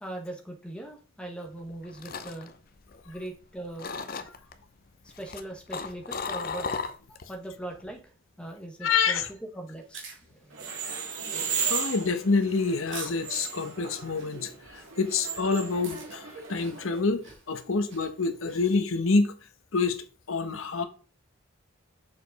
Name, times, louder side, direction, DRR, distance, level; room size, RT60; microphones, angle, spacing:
voice 1, 0.0-2.5 3.1-3.9 5.0-6.7 7.1-8.0 8.4-9.2 9.5-10.1 10.3-10.7, right 1 dB, 5° left, 1.2 m, -40 dB
sound 1, 1.6-3.4 3.8-4.5 5.1-7.3 7.7-8.0, left 4 dB, 45° left, 0.6 m, -35 dB
voice 2, 8.8-9.3 11.7-19.3 19.7-20.9, left 4 dB, 75° left, 0.9 m, -27 dB
sound 2, 9.7-18.8, right 5 dB, 60° right, 2.0 m, -48 dB
sound 3, 10.5-17.0, right 6 dB, 85° right, 2.5 m, -35 dB
6.6 x 5.1 x 4.0 m
head